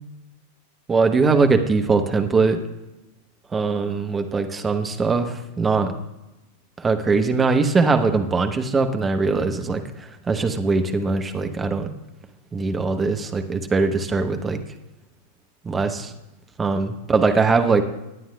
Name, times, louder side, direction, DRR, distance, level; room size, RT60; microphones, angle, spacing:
voice 1, 0.9-2.6 3.5-5.9 6.8-11.9 12.5-14.6 15.6-16.1 16.6-17.8, right 4 dB, 15° right, 6 dB, 1.0 m, -21 dB
21.5 x 9.3 x 2.3 m, 0.98 s
figure-of-eight pair, 90°, 0 cm